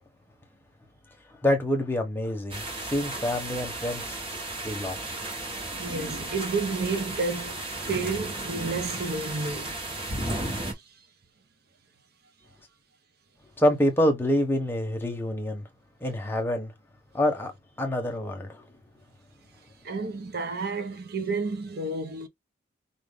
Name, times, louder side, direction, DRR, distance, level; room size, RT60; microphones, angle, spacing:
voice 1, 1.4-4.2 4.6-5.1 13.6-15.6 16.0-16.7 17.1-17.5 17.8-18.6, left 1 dB, 10° left, 0.9 m, -26 dB
sound 1, 2.5-10.7, right 2 dB, 25° right, 1.1 m, -34 dB
voice 2, 5.7-10.8 19.8-22.3, right 3 dB, 50° right, 0.7 m, -31 dB
4.7 x 2.6 x 3.5 m
head